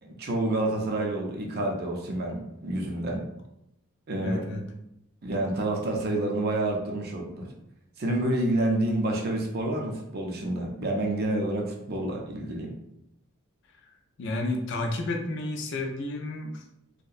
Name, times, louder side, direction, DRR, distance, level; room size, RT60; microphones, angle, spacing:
voice 1, 0.0-3.3 4.1-4.6 5.2-7.5 8.0-12.7, right 1 dB, 45° right, 1 dB, 0.4 m, -28 dB
voice 2, 4.2-4.6 14.2-16.6, left 2 dB, 55° left, 3 dB, 0.4 m, -31 dB
2.6 x 2.1 x 2.3 m, 0.81 s
head